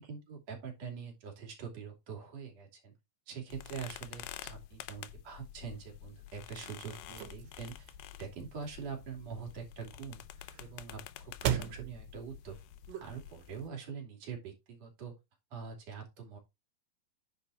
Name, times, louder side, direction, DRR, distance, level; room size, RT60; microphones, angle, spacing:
voice 1, 0.0-2.9 3.3-7.9 8.2-10.2 10.6-12.6 12.9-15.2 15.5-16.4, right 6 dB, 50° right, 3.9 m, -44 dB
sound 1, 3.5-13.7, left 14 dB, 85° left, 2.4 m, -49 dB
sound 2, 6.4-13.5, right 10 dB, 80° right, 2.7 m, -41 dB
9.7 x 4.2 x 4.2 m
omnidirectional pair, 4.0 m